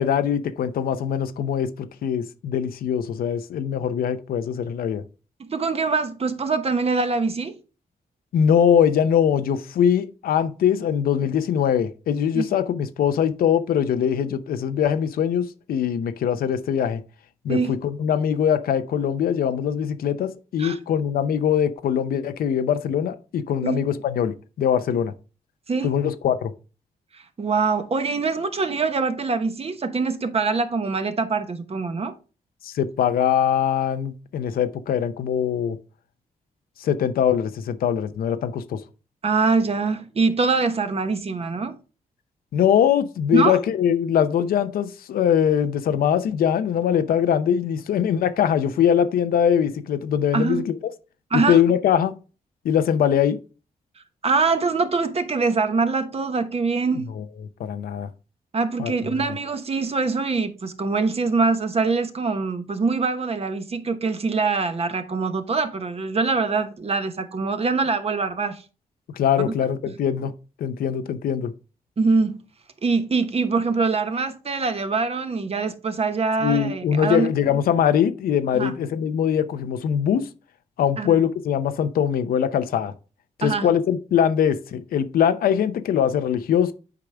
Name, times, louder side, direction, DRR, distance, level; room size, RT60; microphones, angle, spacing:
voice 1, 0.0-5.0 8.3-17.0 17.4-25.1 25.8-26.5 32.6-35.8 36.8-38.8 42.5-50.8 51.3-52.1 52.6-53.4 57.2-57.3 57.6-58.1 58.8-58.9 69.1-70.3 70.6-71.5 76.4-80.3 80.8-82.9 83.4-86.7, left 8 dB, 90° left, 0.7 m, -22 dB
voice 2, 5.5-7.6 12.3-12.5 17.5-17.7 20.6-20.8 23.6-23.8 25.7-25.9 27.4-32.1 39.2-41.8 43.3-43.6 50.3-50.7 51.3-51.6 54.2-57.1 58.5-68.6 69.4-69.5 72.0-72.4 72.8-77.3 78.5-78.7 81.0-81.2 83.4-83.7, right 4 dB, 40° right, 1.1 m, -23 dB
8.3 x 4.9 x 3.4 m
cardioid pair, 80°, 15 cm